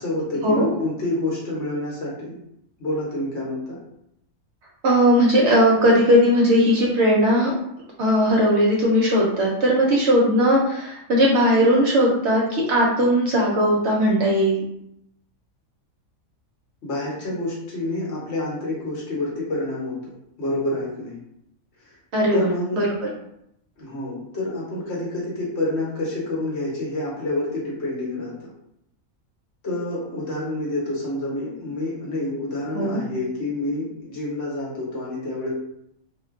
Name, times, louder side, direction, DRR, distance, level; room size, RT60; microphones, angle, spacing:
voice 1, 0.0-2.4 2.8-3.8 16.8-20.1 20.4-21.1 22.3-22.8 23.8-28.5 29.6-35.5, left 2 dB, 55° left, -5 dB, 1.1 m, -28 dB
voice 2, 4.8-7.5 8.0-14.6 22.1-22.5 22.7-22.8 32.7-33.0, equal, 65° right, -3 dB, 0.8 m, -18 dB
2.5 x 2.1 x 3.5 m, 0.77 s
omnidirectional pair, 1.5 m